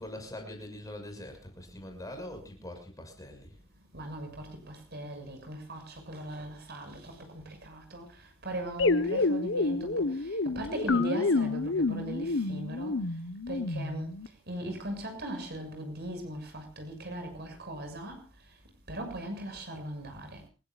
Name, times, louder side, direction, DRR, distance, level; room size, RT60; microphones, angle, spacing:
voice 1, 0.0-3.5, left 1 dB, 15° left, 6.4 m, -43 dB
voice 2, 3.9-13.0 13.5-14.2 14.5-18.2 18.9-20.4, right 1 dB, 55° right, 6.8 m, -39 dB
sound 1, 8.8-14.3, left 3 dB, 65° left, 1.1 m, -29 dB
28.5 x 16.5 x 2.4 m
head